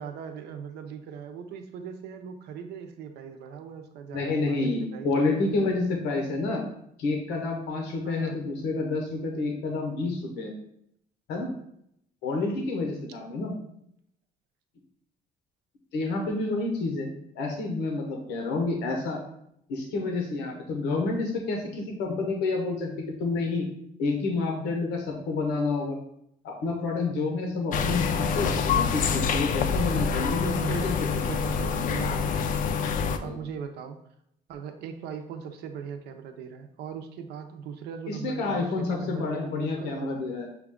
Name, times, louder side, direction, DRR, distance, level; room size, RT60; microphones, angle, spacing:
voice 1, 0.0-5.6 8.0-8.4 30.1-30.9 31.3-32.5 33.2-34.0 34.5-40.3, right 7 dB, 75° right, 6 dB, 0.6 m, -39 dB
voice 2, 4.1-6.6 7.0-10.5 11.3-11.5 12.2-13.5 15.9-17.1 17.3-19.2 19.7-22.9 23.2-23.7 24.0-26.0 26.4-31.0 31.6-31.7 33.2-33.4 38.1-40.5, left 3 dB, 90° left, 1 dB, 0.9 m, -29 dB
sound 1, 27.7-33.2, left 6 dB, 50° left, 0.4 m, -26 dB
5.9 x 2.4 x 3.6 m, 0.75 s
cardioid pair, 110°, 17 cm